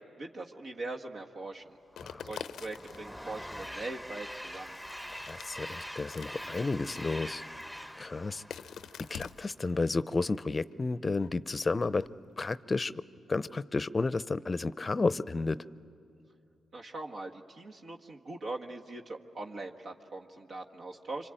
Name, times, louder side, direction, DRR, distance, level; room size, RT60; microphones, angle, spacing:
voice 1, 0.2-1.8 2.2-4.8 16.7-21.3, right 2 dB, 60° right, 0 dB, 1.6 m, -41 dB
Train, 1.9-9.4, equal, 5° right, 1.0 m, -44 dB
sound 1, 2.0-3.1 4.5-6.5 6.7-7.8 8.5-9.7 10.7-10.8 11.2-12.2, left 8 dB, 70° left, 0.6 m, -46 dB
voice 2, 2.0-2.3 5.3-7.4 8.0-8.4 9.1-12.1 12.4-13.0 13.3-15.6, left 3 dB, 35° left, 17 dB, 0.6 m, -32 dB
26.5 x 25.0 x 9.1 m, 2.4 s
hypercardioid pair, 45°, 0 cm